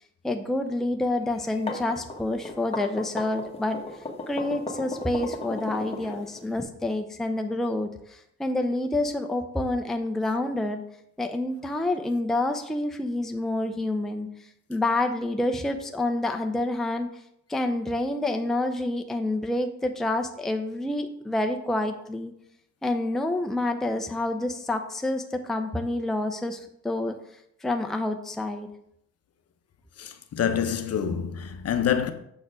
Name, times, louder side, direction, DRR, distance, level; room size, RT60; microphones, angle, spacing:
voice 1, 0.2-3.8 4.3-10.8 11.2-14.3 14.7-17.1 17.5-22.3 22.8-27.2 27.6-28.7, left 2 dB, ahead, 0.6 m, -28 dB
sound 1, 1.4-6.6, left 2 dB, 15° left, 1.3 m, -35 dB
voice 2, 30.0-32.1, left 8 dB, 45° left, 0.8 m, -26 dB
7.1 x 4.2 x 5.0 m
supercardioid pair, 90°, 34 cm